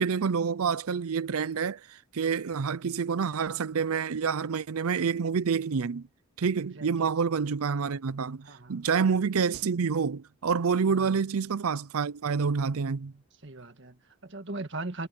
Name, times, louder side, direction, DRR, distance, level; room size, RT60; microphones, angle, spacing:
voice 1, 0.0-6.1 6.4-13.1, right 5 dB, 80° right, 0.5 m, -28 dB
voice 2, 8.4-8.8 10.9-11.1 13.4-15.1, right 2 dB, 55° right, 1.8 m, -39 dB
head